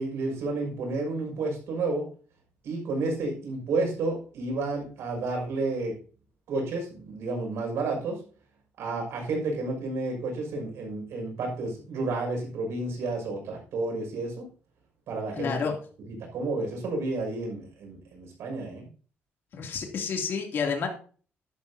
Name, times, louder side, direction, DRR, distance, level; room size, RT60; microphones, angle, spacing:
voice 1, 0.0-2.1 2.6-6.0 6.5-8.2 8.8-14.5 15.1-15.6 16.1-18.9, right 3 dB, 75° right, 2 dB, 6.4 m, -31 dB
voice 2, 15.4-15.7 19.5-20.9, left 5 dB, 55° left, 2 dB, 3.0 m, -29 dB
12.0 x 12.0 x 2.9 m, 0.41 s
cardioid pair, 160°, 4 cm